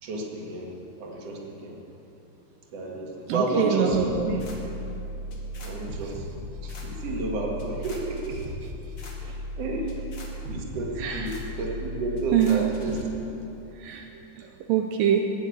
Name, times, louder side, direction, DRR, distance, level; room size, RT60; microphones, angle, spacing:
voice 1, 0.0-0.7 1.0-1.8 2.7-4.4 5.6-8.4 9.6-9.9 10.5-13.2, right 2 dB, 50° right, -1 dB, 2.6 m, -31 dB
voice 2, 3.3-4.5 9.2-9.3 11.0-11.4 12.3-12.8 13.8-15.3, right 8 dB, 80° right, 3 dB, 2.3 m, -25 dB
sound 1, 3.9-13.0, equal, 40° left, 1.9 m, -36 dB
19.0 x 7.2 x 8.4 m, 2.9 s
omnidirectional pair, 4.0 m